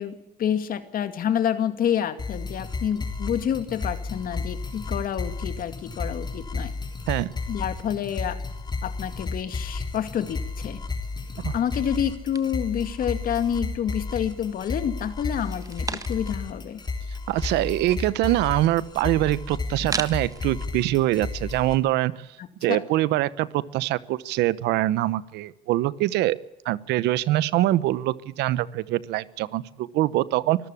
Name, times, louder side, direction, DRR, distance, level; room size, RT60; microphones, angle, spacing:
voice 1, 0.0-6.7 7.5-8.4 8.8-10.8 11.5-16.8 22.7-22.8, left 9 dB, 55° left, 11 dB, 2.2 m, -28 dB
sound 1, 2.2-21.8, left 3 dB, 25° left, 3.9 m, -33 dB
sound 2, 12.3-13.6 14.0-14.7 15.2-16.5 16.9-17.0 17.1-20.4, right 4 dB, 20° right, 1.4 m, -38 dB
voice 2, 17.3-22.1 22.6-26.4 26.6-30.6, right 15 dB, 85° right, 19 dB, 0.9 m, -24 dB
24.5 x 14.0 x 8.5 m, 0.92 s
cardioid pair, 110°, 17 cm